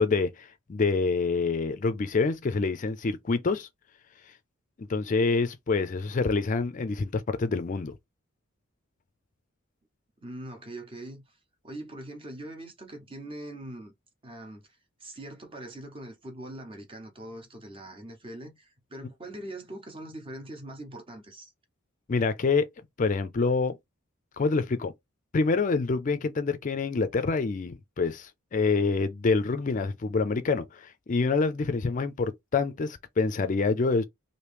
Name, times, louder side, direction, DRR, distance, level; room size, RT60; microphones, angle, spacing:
voice 1, 0.0-3.7 4.8-7.9 22.1-22.7 23.0-23.7 24.4-24.9 25.3-34.0, left 4 dB, 40° left, 0.4 m, -26 dB
voice 2, 10.2-11.4 11.6-13.9 14.2-14.7 15.0-21.5, right 1 dB, 25° right, 0.9 m, -42 dB
3.1 x 2.6 x 3.3 m
head